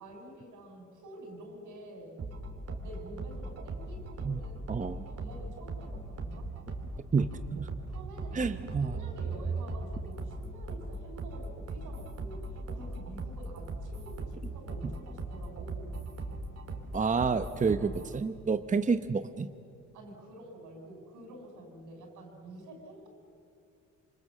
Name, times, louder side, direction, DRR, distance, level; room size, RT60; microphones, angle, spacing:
voice 1, 0.0-2.1 2.8-6.5 7.9-8.5 8.8-12.5 12.7-16.0 19.9-23.1, right 1 dB, 80° right, 3 dB, 6.6 m, -48 dB
Fluffy Song Drop, 2.2-18.2, right 2 dB, 55° right, 3.6 m, -39 dB
voice 2, 4.7-5.1 7.1-7.7 8.3-9.0 16.9-19.5, right 5 dB, 25° right, 10 dB, 0.9 m, -29 dB
27.0 x 25.0 x 7.5 m, 2.5 s
cardioid pair, 90°, 30 cm